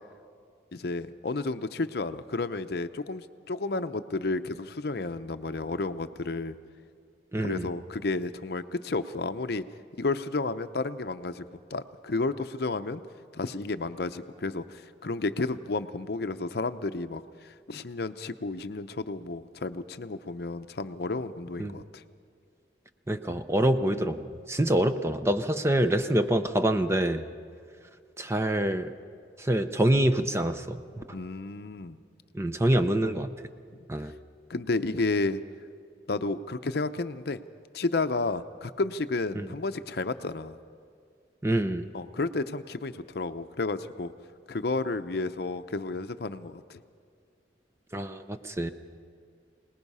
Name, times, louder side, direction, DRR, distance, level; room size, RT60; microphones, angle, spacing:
voice 1, 0.7-6.6 7.4-9.6 10.0-11.4 11.7-13.0 13.3-22.0 31.1-32.0 34.5-35.4 36.1-37.4 37.7-40.6 41.9-44.1 44.5-46.8, left 3 dB, 60° left, 10 dB, 0.6 m, -32 dB
voice 2, 7.3-7.7 21.6-21.7 23.1-27.2 28.2-28.9 29.4-31.0 32.3-33.3 33.9-34.1 39.3-39.5 41.4-41.9 47.9-48.7, right 1 dB, 15° right, 9 dB, 0.6 m, -26 dB
25.5 x 19.0 x 5.5 m, 2.2 s
head